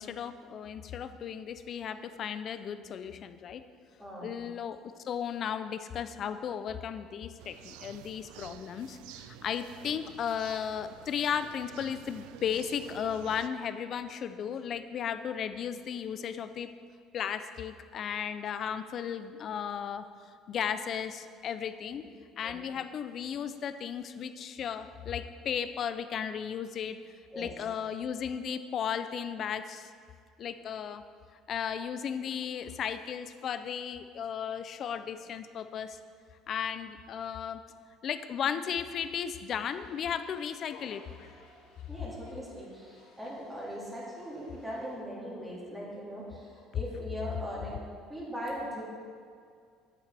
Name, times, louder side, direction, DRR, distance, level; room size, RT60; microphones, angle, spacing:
voice 1, 0.0-3.6 4.2-4.8 5.0-16.7 17.1-20.0 20.5-22.0 22.4-27.0 27.4-29.9 30.4-31.0 31.5-36.0 36.5-37.6 38.0-41.0, left 8 dB, 40° left, 11 dB, 0.4 m, -35 dB
sound 1, 7.4-13.5, right 11 dB, 90° right, 0.3 m, -50 dB
sound 2, 39.7-44.9, left 3 dB, 85° left, 2.1 m, -58 dB
voice 2, 41.9-47.7 48.1-48.8, equal, 10° right, -6 dB, 2.2 m, -40 dB
10.0 x 8.4 x 3.4 m, 2.1 s
cardioid pair, 145°, 0 cm